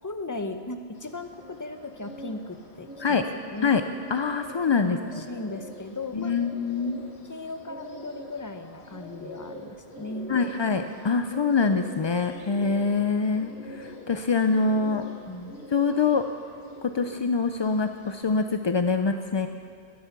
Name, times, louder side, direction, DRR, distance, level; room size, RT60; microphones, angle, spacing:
voice 1, 0.0-3.8 4.8-6.3 7.3-10.3 15.3-15.6, left 2 dB, 20° left, 7 dB, 0.7 m, -37 dB
Bird, 0.9-18.2, left 1 dB, 80° left, 1.7 m, -45 dB
voice 2, 4.1-5.0 6.1-7.0 10.3-15.0 15.7-16.3 16.8-19.5, left 4 dB, 50° left, 7 dB, 0.3 m, -24 dB
20.5 x 8.1 x 6.0 m, 2.1 s
omnidirectional pair, 1.1 m